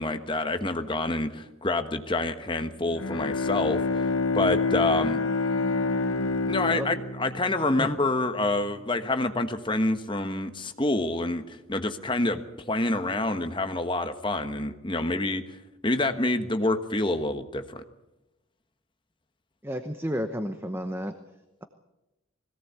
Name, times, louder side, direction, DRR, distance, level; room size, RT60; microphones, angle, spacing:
voice 1, 0.0-4.0 4.3-5.2 6.5-12.4 12.7-15.4 15.8-17.8, left 2 dB, 25° left, 8 dB, 1.3 m, -27 dB
Bowed string instrument, 2.8-8.4, left 4 dB, 90° left, 1.2 m, -28 dB
voice 2, 19.6-21.1, equal, 10° right, 8 dB, 0.9 m, -31 dB
21.5 x 17.0 x 8.2 m, 0.98 s
head